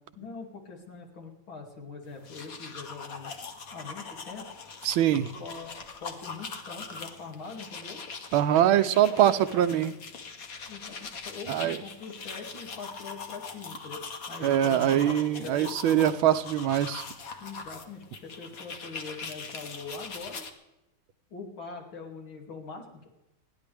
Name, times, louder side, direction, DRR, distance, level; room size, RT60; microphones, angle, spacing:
voice 1, 0.2-4.5 5.1-8.0 8.6-9.6 10.7-14.0 14.3-16.1 17.4-20.5 21.3-23.1, left 4 dB, 70° left, 1 dB, 3.4 m, -43 dB
sound 1, 2.1-20.5, left 4 dB, 50° left, 1.5 m, -42 dB
voice 2, 4.8-5.3 8.3-9.9 11.5-11.8 14.4-17.0, right 11 dB, 80° right, 12 dB, 1.5 m, -23 dB
29.5 x 10.5 x 3.4 m, 0.96 s
omnidirectional pair, 2.3 m